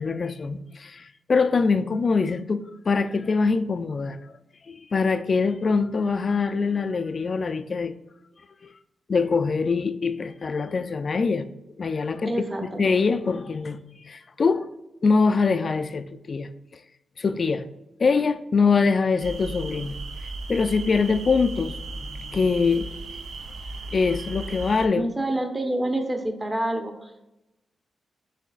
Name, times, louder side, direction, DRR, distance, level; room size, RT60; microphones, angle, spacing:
voice 1, 0.0-4.3 4.7-7.9 8.6-8.7 9.1-11.5 11.8-12.3 12.8-14.7 15.0-16.8 17.2-17.7 18.0-20.0 20.2-22.9 23.9-25.0, left 4 dB, 50° left, 0.3 m, -24 dB
voice 2, 12.3-12.9 25.0-27.3, right 1 dB, 25° right, 0.9 m, -28 dB
sound 1, 19.2-24.9, right 2 dB, 70° right, 0.5 m, -36 dB
6.6 x 3.3 x 2.4 m
cardioid pair, 60°, 0 cm